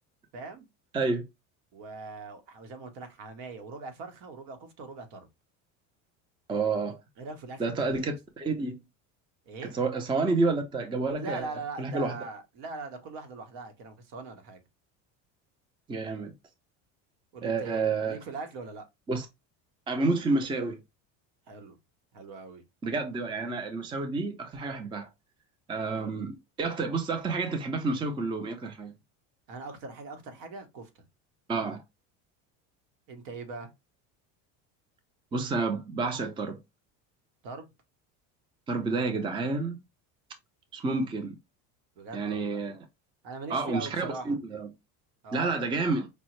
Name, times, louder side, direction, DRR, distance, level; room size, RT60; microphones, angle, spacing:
voice 1, 0.3-0.7 1.7-5.3 7.2-8.2 9.5-9.7 11.2-14.6 17.3-18.8 21.5-21.8 22.1-22.6 25.9-26.2 29.5-31.0 33.1-33.7 37.4-37.7 42.0-42.6 43.2-44.4 45.2-45.6, right 3 dB, 65° right, 1.2 m, -41 dB
voice 2, 0.9-1.3 6.5-7.0 7.6-8.8 9.7-11.5 11.8-12.2 15.9-16.3 17.4-18.2 19.1-19.3 19.9-20.8 22.8-25.1 25.7-28.9 31.5-31.8 35.3-36.6 38.7-39.8 40.7-41.4 42.1-42.8 43.5-44.7 45.3-46.1, right 3 dB, 15° right, 0.5 m, -29 dB
5.2 x 2.1 x 3.0 m
cardioid pair, 135°, 37 cm